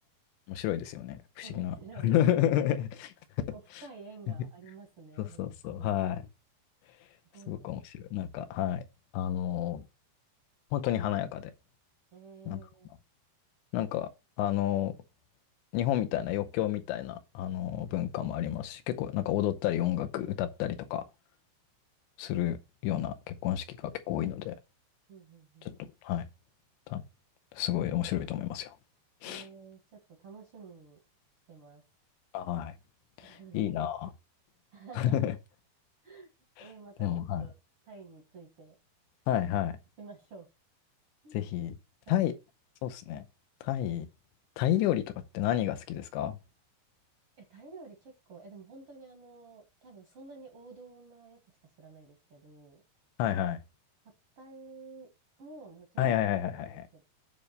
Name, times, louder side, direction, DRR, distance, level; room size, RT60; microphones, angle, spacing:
voice 1, 0.5-1.8 2.0-3.1 5.2-6.2 7.5-8.8 9.1-9.9 10.7-11.5 12.5-12.6 13.7-14.1 14.4-14.9 15.7-21.0 22.2-22.6 22.8-24.6 25.7-26.3 26.9-27.0 27.5-28.7 29.2-29.4 32.3-32.7 33.2-34.1 35.0-35.3 37.0-37.5 39.3-39.7 41.3-41.8 42.1-42.3 42.8-43.3 43.6-44.1 44.6-45.0 45.3-46.4 53.2-53.6 56.0-56.8, left 12 dB, 85° left, 3.1 m, -30 dB
voice 2, 1.4-2.1 3.5-5.9 7.3-7.7 12.1-12.9 17.7-18.1 25.1-25.7 29.2-31.0 31.5-31.8 33.2-33.8 34.7-35.2 36.0-36.3 36.6-37.5 37.8-38.8 40.0-40.5 41.2-41.4 42.1-42.3 47.4-52.8 54.4-55.1 55.4-56.2 56.6-57.0, right 4 dB, 60° right, 1.5 m, -51 dB
9.5 x 3.3 x 6.5 m
omnidirectional pair, 5.1 m